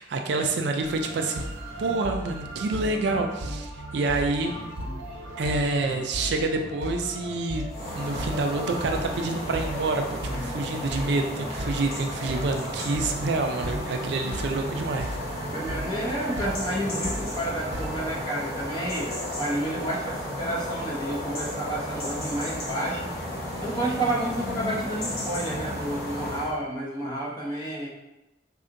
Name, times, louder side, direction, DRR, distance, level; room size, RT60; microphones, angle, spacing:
voice 1, 0.0-1.4 1.8-4.5 5.4-7.6 8.0-10.0 10.3-15.2, right 3 dB, 60° right, 4 dB, 0.4 m, -27 dB
sound 1, 0.8-18.2, right 1 dB, 90° right, 0.7 m, -36 dB
Calm Woodland Soundscape, 7.7-26.5, left 1 dB, 50° left, 1.0 m, -34 dB
voice 2, 15.5-23.1 23.6-27.9, right 1 dB, 20° left, -6 dB, 0.8 m, -30 dB
4.1 x 2.8 x 2.5 m, 0.98 s
head